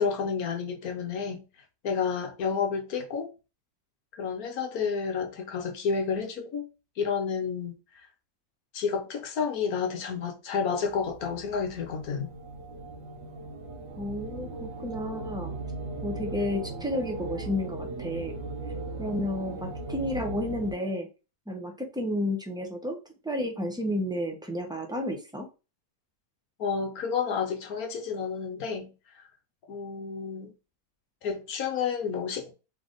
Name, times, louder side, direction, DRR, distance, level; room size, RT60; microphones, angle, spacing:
voice 1, 0.0-1.4 1.8-3.3 4.1-6.7 7.0-7.8 8.7-12.3 26.6-28.9 29.2-29.3 29.7-30.5 31.2-32.5, left 6 dB, 60° left, 1.2 m, -30 dB
sound 1, 10.8-20.7, right 2 dB, 75° right, 1.7 m, -38 dB
voice 2, 14.0-15.5 16.0-18.4 19.0-21.1 21.5-23.0 23.2-25.5, left 1 dB, 5° right, 0.5 m, -31 dB
3.9 x 3.4 x 3.9 m
omnidirectional pair, 2.0 m